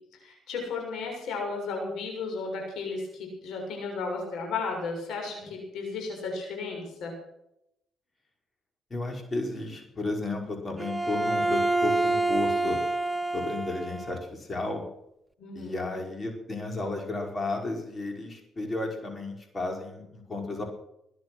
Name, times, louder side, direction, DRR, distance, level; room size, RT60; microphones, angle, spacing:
voice 1, 0.2-7.1 15.4-15.9, left 4 dB, 80° left, 1 dB, 6.9 m, -34 dB
voice 2, 8.9-12.8 13.3-14.8 15.5-20.6, left 2 dB, 30° left, 3 dB, 5.3 m, -33 dB
Bowed string instrument, 10.8-14.2, right 2 dB, 15° right, 0.8 m, -27 dB
21.5 x 10.5 x 6.3 m, 0.80 s
cardioid pair, 90°, 0 cm